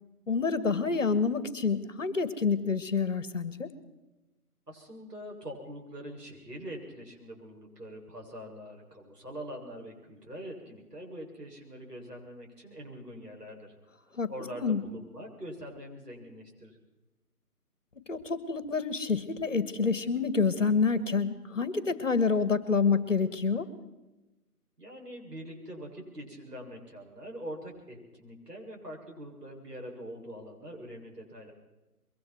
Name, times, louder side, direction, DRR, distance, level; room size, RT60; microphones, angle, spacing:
voice 1, 0.3-3.7 14.2-14.3 14.6-14.8 18.1-23.7, left 5 dB, 55° left, 14 dB, 1.9 m, -28 dB
voice 2, 4.7-13.7 14.1-16.8 24.8-31.5, equal, 80° right, 0 dB, 7.6 m, -44 dB
24.5 x 23.0 x 4.7 m, 1.0 s
figure-of-eight pair, 160°, 47 cm